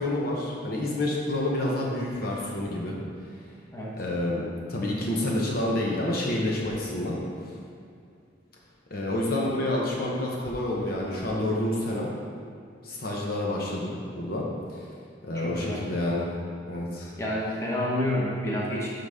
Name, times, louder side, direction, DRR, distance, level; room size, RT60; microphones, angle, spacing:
voice 1, 0.0-3.0 4.0-4.4 4.7-7.2 7.5-7.6 8.9-12.1 12.8-14.8 15.3-16.3 16.7-17.1, left 1 dB, 55° left, -3 dB, 1.0 m, -28 dB
voice 2, 15.3-15.8 17.2-18.9, left 1 dB, 15° left, -5 dB, 1.2 m, -29 dB
11.5 x 4.0 x 3.6 m, 2.3 s
head